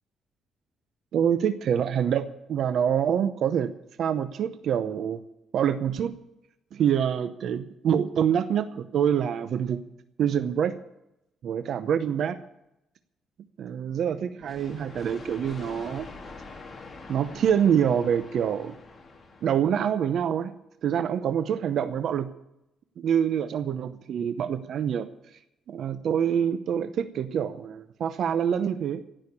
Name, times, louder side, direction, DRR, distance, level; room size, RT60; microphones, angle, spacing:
voice 1, 1.1-3.7 4.0-5.2 5.5-6.1 6.7-9.8 10.2-10.7 11.4-12.4 13.6-16.1 17.1-18.8 19.4-20.5 20.8-22.3 23.0-25.1 25.7-29.0, right 8 dB, 65° right, 12 dB, 0.8 m, -26 dB
sound 1, 14.4-20.1, left 3 dB, 30° left, 2.3 m, -45 dB
16.5 x 6.4 x 9.9 m, 0.86 s
cardioid pair, 110°, 0 cm